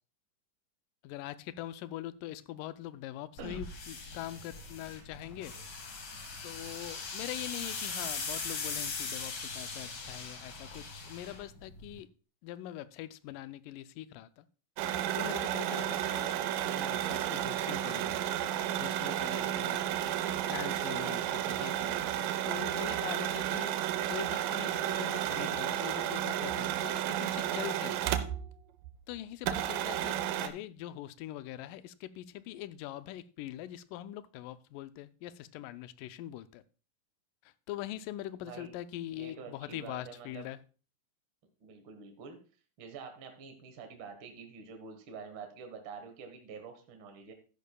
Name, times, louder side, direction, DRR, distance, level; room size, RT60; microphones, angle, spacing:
voice 1, 1.0-5.5 6.4-12.1 12.4-14.5 15.2-16.4 16.6-18.5 18.8-19.8 20.5-23.8 24.1-28.0 29.1-36.6 37.7-40.6, left 13 dB, 80° left, 14 dB, 2.1 m, -43 dB
sound 1, 3.4-12.0, left 4 dB, 45° left, 1.5 m, -40 dB
sound 2, 14.8-28.5 28.8-28.9 29.4-30.5, right 11 dB, 85° right, 2.3 m, -32 dB
voice 2, 38.4-38.7 39.1-40.5 41.6-42.4 42.8-47.3, right 5 dB, 60° right, 5 dB, 1.4 m, -47 dB
13.0 x 10.0 x 2.2 m, 0.36 s
omnidirectional pair, 3.9 m